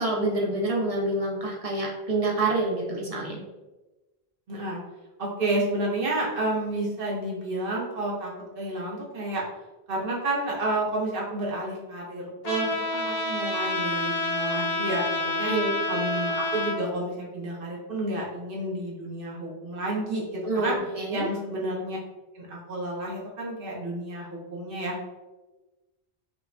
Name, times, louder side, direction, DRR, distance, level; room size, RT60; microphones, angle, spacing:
voice 1, 0.0-3.4 15.5-15.8 20.4-21.3, right 2 dB, 40° right, -2 dB, 0.7 m, -27 dB
voice 2, 4.5-4.8 5.2-9.4 9.9-15.5 15.9-20.8 21.1-22.0 22.3-25.1, right 1 dB, 60° right, -3 dB, 1.1 m, -30 dB
Trumpet, 12.4-16.8, left 2 dB, 45° left, 0.6 m, -28 dB
5.0 x 2.2 x 2.5 m, 1.1 s
omnidirectional pair, 1.1 m